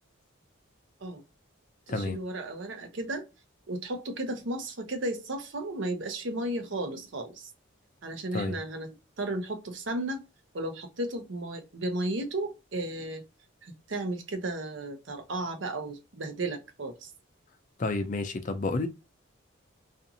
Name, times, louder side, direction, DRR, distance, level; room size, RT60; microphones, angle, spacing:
voice 1, 1.9-3.2 3.7-7.5 8.0-10.2 10.5-13.2 13.6-17.1, right 1 dB, 65° right, 0.7 m, -34 dB
voice 2, 17.8-18.9, left 3 dB, 40° left, 0.4 m, -30 dB
2.6 x 2.5 x 2.6 m
head